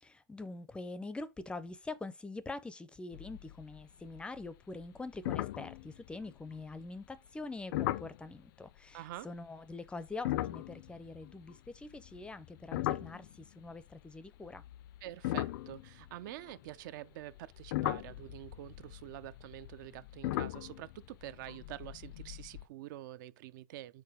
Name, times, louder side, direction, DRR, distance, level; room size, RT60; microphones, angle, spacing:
voice 1, 0.0-14.6, left 3 dB, 10° left, 0.4 m, -44 dB
sound 1, 3.1-3.8 4.1-4.5 4.8-4.9 5.3-6.6 7.7-8.2 10.1-13.7 14.5-16.7 17.3-22.6, left 15 dB, 75° left, 0.4 m, -38 dB
voice 2, 8.9-9.3 15.0-24.0, right 14 dB, 65° right, 0.4 m, -47 dB
4.8 x 4.2 x 4.8 m
supercardioid pair, 140°, 11 cm